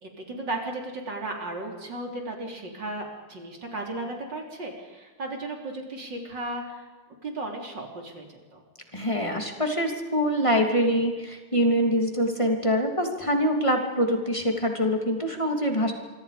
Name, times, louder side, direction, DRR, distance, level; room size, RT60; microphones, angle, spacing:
voice 1, 0.0-6.9 7.2-8.6, right 2 dB, 60° right, 2 dB, 4.3 m, -35 dB
voice 2, 8.9-15.9, equal, 15° left, 3 dB, 3.0 m, -24 dB
26.5 x 24.0 x 5.2 m, 1.3 s
omnidirectional pair, 2.2 m